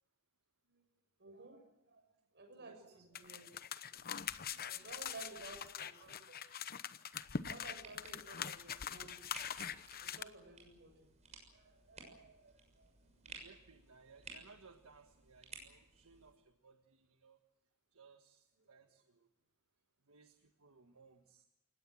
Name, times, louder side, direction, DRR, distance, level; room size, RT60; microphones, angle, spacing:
voice 1, 1.2-2.0 2.3-3.5 3.9-4.0 4.4-6.4 7.5-9.6 10.0-12.9 18.6-18.8, right 3 dB, 50° right, 6 dB, 6.7 m, -55 dB
voice 2, 2.6-3.0 4.5-4.9 13.2-17.4 17.9-19.3 20.0-21.5, right 4 dB, 70° right, 7 dB, 1.6 m, -63 dB
sound 1, 3.1-10.2, left 7 dB, 45° left, 0.9 m, -43 dB
sound 2, 7.6-16.3, right 4 dB, 30° right, 6.6 m, -57 dB
28.5 x 17.5 x 7.7 m, 0.90 s
head